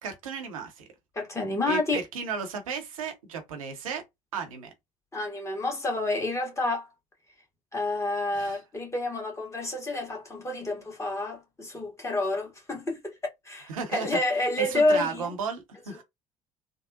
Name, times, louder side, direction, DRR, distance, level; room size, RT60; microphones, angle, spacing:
voice 1, 0.0-0.8 1.7-4.0 4.3-4.7 8.3-8.6 13.7-14.1 14.6-16.0, right 5 dB, 75° right, 0.7 m, -34 dB
voice 2, 1.1-2.0 5.1-6.9 7.7-13.1 13.4-15.3, left 2 dB, 15° left, 1.3 m, -29 dB
3.5 x 2.0 x 2.5 m
figure-of-eight pair, 60°, 18 cm